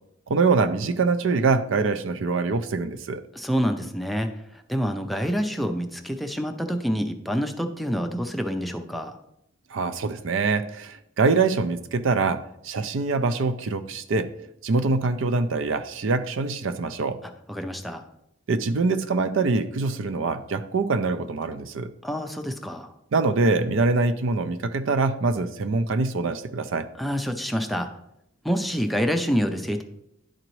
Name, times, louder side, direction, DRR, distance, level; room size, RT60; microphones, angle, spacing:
voice 1, 0.3-3.2 9.7-14.3 14.6-17.2 18.5-21.9 23.1-26.9, right 3 dB, 70° right, 11 dB, 0.4 m, -24 dB
voice 2, 3.3-9.2 17.5-18.0 22.0-22.9 27.0-27.9 28.4-29.8, equal, ahead, 4 dB, 0.4 m, -27 dB
10.5 x 3.9 x 3.1 m, 0.79 s
head